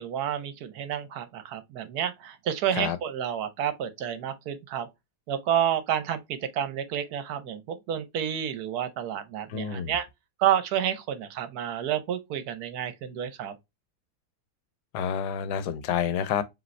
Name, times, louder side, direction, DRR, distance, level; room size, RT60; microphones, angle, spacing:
voice 1, 0.0-4.9 5.3-10.1 10.4-13.5, right 10 dB, 70° right, 1.2 m, -30 dB
voice 2, 9.5-9.9 14.9-16.4, left 8 dB, 80° left, 1.2 m, -28 dB
5.0 x 3.0 x 3.1 m
omnidirectional pair, 1.8 m